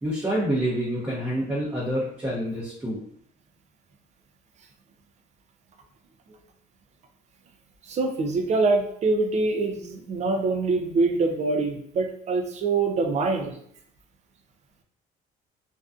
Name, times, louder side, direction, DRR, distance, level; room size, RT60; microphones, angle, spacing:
voice 1, 0.0-3.0, equal, 15° right, -8 dB, 0.8 m, -27 dB
voice 2, 7.9-13.6, right 3 dB, 40° right, 4 dB, 0.5 m, -24 dB
2.5 x 2.2 x 2.4 m, 0.66 s
cardioid pair, 110°, 17 cm